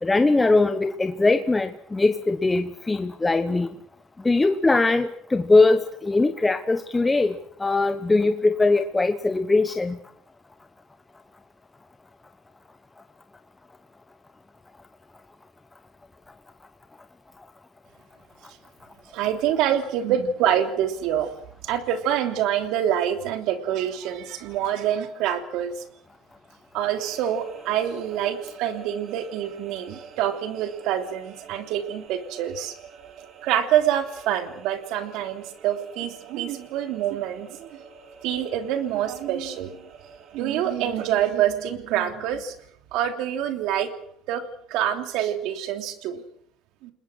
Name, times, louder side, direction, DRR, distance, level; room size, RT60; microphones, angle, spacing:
voice 1, 0.0-3.7 4.2-10.0, left 3 dB, 15° left, 9 dB, 1.1 m, -21 dB
voice 2, 19.1-21.3 21.6-25.8 26.7-32.7 33.4-37.8 38.2-39.7 40.3-42.5 42.9-43.9 44.3-44.4 44.7-46.2 46.8-46.9, right 10 dB, 75° right, 7 dB, 3.1 m, -26 dB
sound 1, 26.9-41.3, right 7 dB, 45° right, 4.3 m, -47 dB
29.5 x 20.0 x 6.4 m, 0.66 s
cardioid pair, 115°, 0 cm